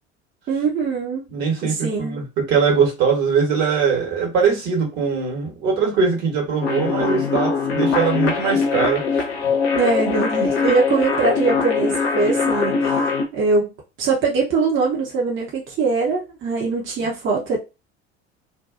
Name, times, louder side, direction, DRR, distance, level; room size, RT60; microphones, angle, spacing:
voice 1, 0.5-1.2 1.6-2.2 9.7-13.7 14.0-17.6, right 4 dB, 35° right, 0.8 m, -22 dB
voice 2, 1.3-9.0, right 6 dB, 55° right, 1.4 m, -21 dB
sound 1, 6.6-13.2, left 5 dB, 70° left, 0.7 m, -21 dB
2.6 x 2.3 x 2.4 m
figure-of-eight pair, 60°, 33 cm